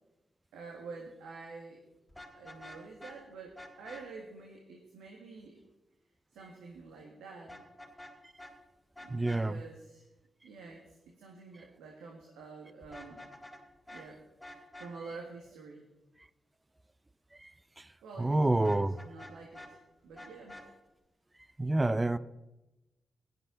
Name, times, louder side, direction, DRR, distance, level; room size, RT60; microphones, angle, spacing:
voice 1, 0.5-1.8 2.3-5.6 6.3-7.6 9.0-10.0 10.4-13.3 13.9-14.2 14.8-15.9 18.0-19.8 20.0-20.6, right 4 dB, 90° right, 1.7 m, -48 dB
Vehicle horn car horn honking, 2.1-3.2 3.6-4.0 7.5-8.1 8.4-8.5 9.0-9.4 12.8-13.6 13.9-14.0 14.4-14.9 18.6-19.7 20.2-20.7, left 1 dB, 5° left, 4.3 m, -48 dB
voice 2, 9.1-9.6 17.4-17.5 17.8-17.9 18.2-19.0 21.6-22.2, right 2 dB, 25° right, 0.6 m, -28 dB
16.0 x 11.5 x 3.9 m
supercardioid pair, 40°, 0 cm